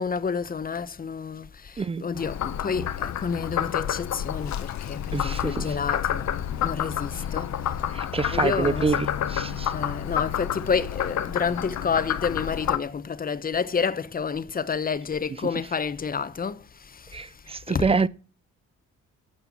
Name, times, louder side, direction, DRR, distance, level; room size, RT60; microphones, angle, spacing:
voice 1, 0.0-7.8 8.3-9.0 9.5-17.3 17.7-18.1, left 6 dB, 30° left, 0.9 m, -29 dB
Frog, 2.2-12.8, left 10 dB, 65° left, 0.9 m, -29 dB
voice 2, 8.0-9.0 9.3-9.7 17.1-17.3 17.5-18.1, right 4 dB, 20° right, 0.4 m, -25 dB
12.0 x 5.6 x 7.2 m
cardioid pair, 90°, 30 cm